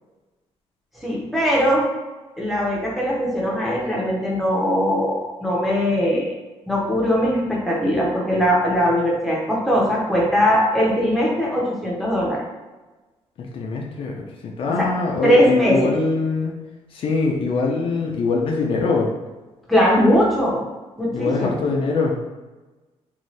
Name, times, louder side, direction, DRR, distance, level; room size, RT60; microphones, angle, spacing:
voice 1, 1.0-1.9 2.4-6.3 6.7-12.4 14.8-14.9 15.2-15.9 19.7-20.6 21.0-21.6, equal, ahead, -4 dB, 0.7 m, -20 dB
voice 2, 13.4-14.1 14.4-16.5 16.9-19.1 21.1-22.1, left 4 dB, 55° left, 0 dB, 0.4 m, -23 dB
2.6 x 2.4 x 3.1 m, 1.2 s
cardioid pair, 130°, 11 cm